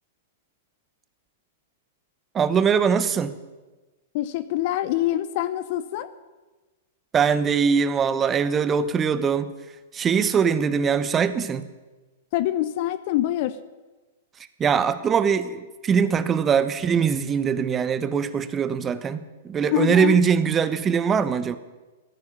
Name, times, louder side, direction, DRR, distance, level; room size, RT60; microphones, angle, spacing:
voice 1, 2.3-3.4 7.1-9.5 9.9-11.7 14.6-21.6, right 6 dB, 20° right, 13 dB, 1.1 m, -22 dB
voice 2, 4.1-6.1 12.3-13.6 19.7-20.2, left 13 dB, 50° left, 14 dB, 0.8 m, -25 dB
15.0 x 9.7 x 10.0 m, 1.2 s
hypercardioid pair, 110°, 0 cm